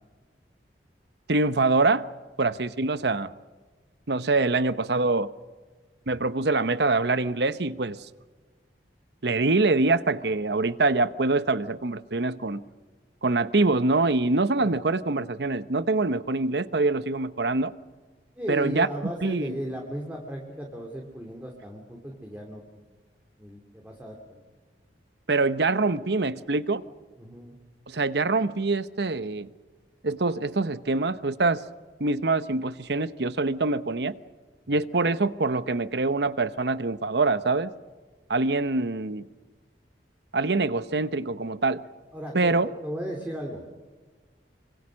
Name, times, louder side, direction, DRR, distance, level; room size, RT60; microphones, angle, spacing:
voice 1, 1.3-2.0 2.4-3.3 4.1-5.3 6.1-8.0 9.2-12.6 13.2-17.7 18.5-19.6 25.3-26.8 27.9-29.5 30.0-31.6 32.0-34.2 34.7-37.7 38.3-39.3 40.3-41.9 42.3-42.7, right 3 dB, 65° right, 0.9 m, -24 dB
voice 2, 18.4-22.8 23.4-24.4 27.2-27.6 42.1-43.7, equal, 10° right, 2.9 m, -36 dB
25.5 x 25.5 x 6.4 m
head